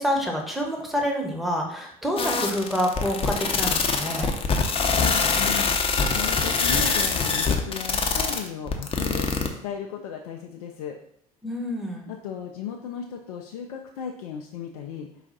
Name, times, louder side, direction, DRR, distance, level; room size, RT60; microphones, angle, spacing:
voice 1, 0.0-4.3 11.4-12.1, equal, ahead, 1 dB, 1.1 m, -27 dB
sound 1, 2.2-9.5, left 4 dB, 30° left, 0.6 m, -23 dB
voice 2, 4.9-11.0 12.1-15.1, left 8 dB, 75° left, 1 dB, 0.4 m, -36 dB
4.7 x 2.4 x 4.0 m, 0.70 s
hypercardioid pair, 65°, 19 cm